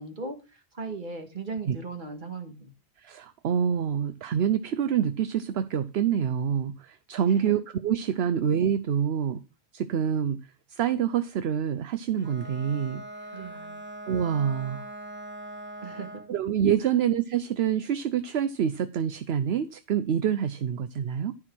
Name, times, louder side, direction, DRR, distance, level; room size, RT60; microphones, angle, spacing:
voice 1, 0.0-2.7 7.2-7.5 8.2-8.3 13.3-13.8 15.8-16.1 16.8-16.9, right 4 dB, 50° right, 1.9 m, -38 dB
voice 2, 3.0-9.4 9.7-10.4 10.8-13.0 14.1-14.8 16.3-21.3, right 8 dB, 70° right, 0.9 m, -26 dB
Bowed string instrument, 12.1-16.4, right 1 dB, 10° right, 1.1 m, -41 dB
13.5 x 4.6 x 6.2 m
omnidirectional pair, 1.1 m